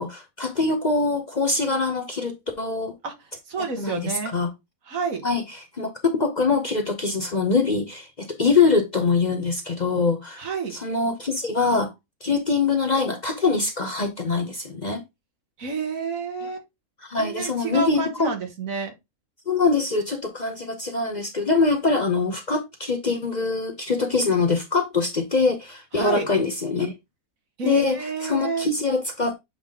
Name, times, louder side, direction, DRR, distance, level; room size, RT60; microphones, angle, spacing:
voice 1, 0.0-2.9 3.8-4.5 5.2-11.9 12.2-15.0 17.0-18.3 19.5-26.9 27.6-29.3, left 4 dB, 35° left, 0.8 m, -23 dB
voice 2, 3.5-4.4 4.9-5.2 10.4-10.7 15.6-16.6 17.2-18.9 25.9-26.3 27.6-28.7, right 4 dB, 70° right, 1.8 m, -29 dB
8.0 x 3.5 x 3.6 m
omnidirectional pair, 1.5 m